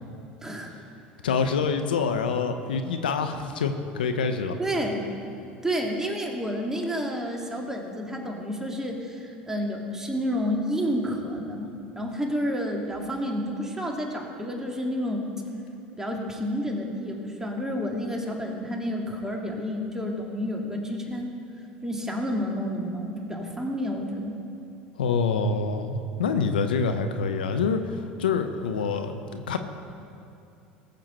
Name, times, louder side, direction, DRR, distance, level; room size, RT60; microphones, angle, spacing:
voice 1, 0.4-0.7 4.6-5.0 5.6-11.7 12.0-15.2 16.0-21.3 21.8-24.3, equal, 10° right, 0 dB, 2.1 m, -30 dB
voice 2, 1.2-4.6 25.0-29.6, left 5 dB, 85° left, 8 dB, 0.7 m, -26 dB
18.5 x 7.6 x 4.3 m, 2.7 s
hypercardioid pair, 80°, 5 cm